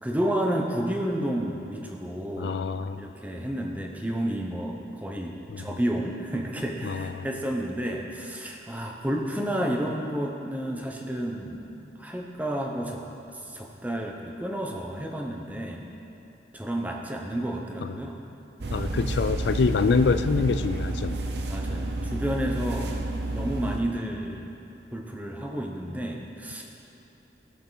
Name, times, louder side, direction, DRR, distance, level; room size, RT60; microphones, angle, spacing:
voice 1, 0.0-2.6 3.0-11.7 12.0-13.0 13.4-15.8 16.5-18.2 18.8-18.9 21.5-23.0 23.3-24.5 24.9-26.6, right 1 dB, 10° right, 0 dB, 0.8 m, -31 dB
voice 2, 2.4-3.0 5.5-5.7 6.8-7.3 17.8-17.9 18.7-21.2, left 4 dB, 70° left, 11 dB, 0.4 m, -25 dB
sound 1, 18.6-23.8, right 2 dB, 65° right, 0.7 m, -30 dB
16.5 x 7.0 x 4.0 m, 3.0 s
head